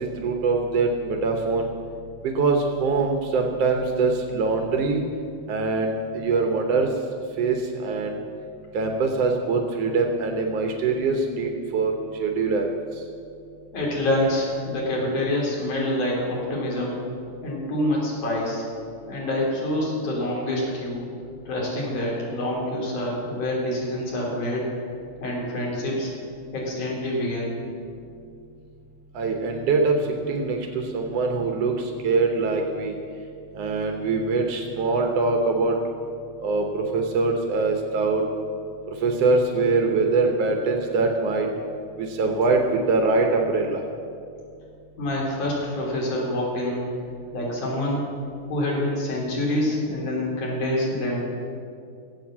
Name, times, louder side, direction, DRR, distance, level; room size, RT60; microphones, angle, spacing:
voice 1, 0.0-1.7 2.2-5.0 5.5-6.9 7.4-8.2 8.7-11.9 12.2-12.7 29.1-30.0 30.3-33.0 33.5-35.8 36.4-38.2 39.0-41.5 42.0-43.8, right 3 dB, 75° right, 3 dB, 1.4 m, -23 dB
voice 2, 13.7-17.0 17.4-18.6 19.1-21.0 21.5-24.7 25.2-26.1 26.5-27.6 45.0-46.8 47.3-48.1 48.4-51.2, left 1 dB, 55° left, -3 dB, 4.6 m, -26 dB
16.0 x 8.3 x 7.4 m, 2.4 s
omnidirectional pair, 4.3 m